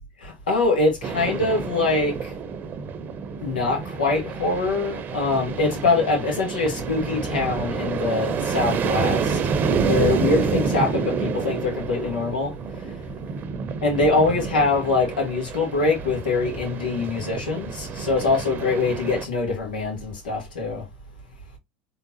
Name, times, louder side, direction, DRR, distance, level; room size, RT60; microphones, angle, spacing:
voice 1, 0.2-2.3 3.4-9.4 9.8-12.5 13.8-20.9, left 3 dB, 80° left, 1.9 m, -23 dB
sound 1, 1.0-19.3, right 5 dB, 40° right, 0.7 m, -28 dB
3.8 x 3.3 x 2.8 m
hypercardioid pair, 85°, 5 cm